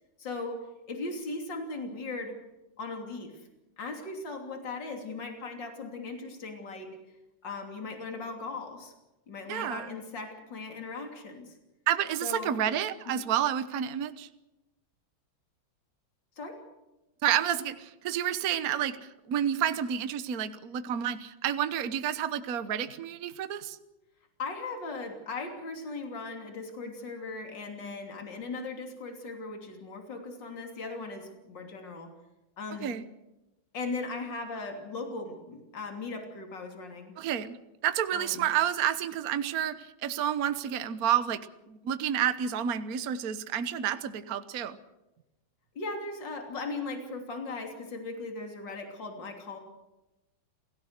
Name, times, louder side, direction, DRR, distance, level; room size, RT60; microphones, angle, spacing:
voice 1, 0.2-2.3 2.8-3.4 3.8-7.0 7.4-8.9 9.3-11.6 12.2-12.6 13.1-13.2 16.4-16.6 24.4-32.1 32.6-33.0 33.7-37.1 38.1-38.5 45.8-49.6, left 3 dB, 65° left, 4 dB, 3.8 m, -38 dB
voice 2, 9.5-9.9 11.9-14.3 17.2-19.0 19.3-23.8 32.8-33.0 37.2-37.6 37.8-41.4 41.7-44.8, right 10 dB, 55° right, 12 dB, 1.4 m, -30 dB
28.5 x 17.0 x 6.6 m, 1.0 s
omnidirectional pair, 2.1 m